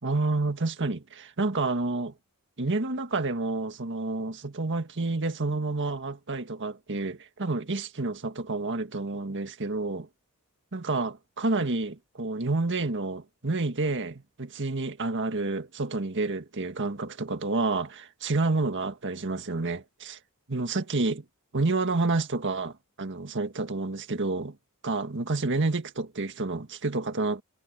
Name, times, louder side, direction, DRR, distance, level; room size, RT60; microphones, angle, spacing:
voice 1, 0.0-2.1 2.6-10.1 10.7-20.2 20.5-21.2 21.5-24.5 24.8-27.4, right 3 dB, 55° right, 1.7 m, -29 dB
head